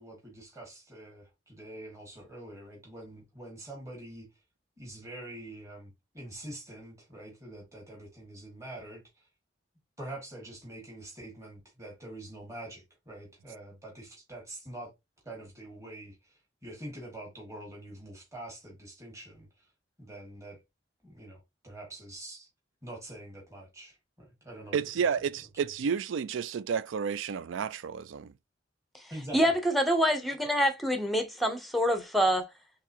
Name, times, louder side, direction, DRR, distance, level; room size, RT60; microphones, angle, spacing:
voice 1, 0.0-4.3 4.8-9.3 10.0-14.9 15.2-19.7 20.0-20.6 21.0-22.5 22.8-24.8 29.1-29.5, right 1 dB, 15° right, 1.9 m, -45 dB
voice 2, 24.7-28.3, right 6 dB, 85° right, 0.4 m, -31 dB
voice 3, 29.3-32.5, equal, ahead, 0.7 m, -26 dB
4.6 x 3.4 x 2.8 m
head